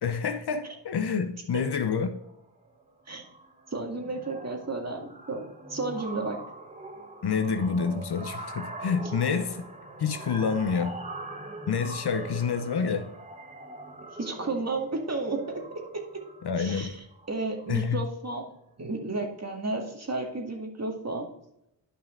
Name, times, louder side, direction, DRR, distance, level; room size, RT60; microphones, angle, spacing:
voice 1, 0.0-2.2 7.2-9.7 10.0-11.0 11.7-13.1 16.4-17.0 17.7-18.1, left 6 dB, 60° left, 1.0 m, -28 dB
sound 1, 2.2-2.3 2.6-2.9 3.1-18.0, right 2 dB, 15° right, 1.3 m, -43 dB
voice 2, 3.7-6.4 14.2-15.6 16.6-18.5 18.8-21.3, right 3 dB, 35° right, 2.1 m, -32 dB
10.0 x 5.4 x 3.8 m
cardioid pair, 70°, 44 cm